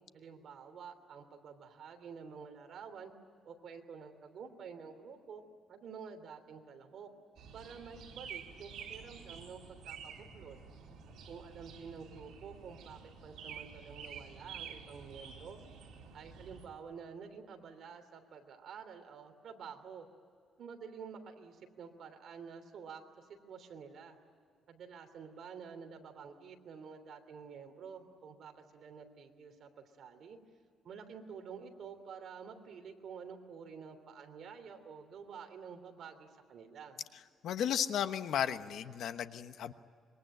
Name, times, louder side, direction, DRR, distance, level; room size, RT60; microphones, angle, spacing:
voice 1, 0.1-3.1 3.4-5.4 5.7-7.1 7.5-10.6 11.3-15.6 16.1-20.1 20.6-24.2 24.7-30.4 30.8-37.0, right 6 dB, 55° right, 6 dB, 3.1 m, -49 dB
sound 1, 7.4-16.7, right 6 dB, 70° right, 4.1 m, -50 dB
voice 2, 37.4-39.7, left 9 dB, 65° left, 10 dB, 1.1 m, -34 dB
26.5 x 23.0 x 9.1 m, 2.1 s
cardioid pair, 150°, 0 cm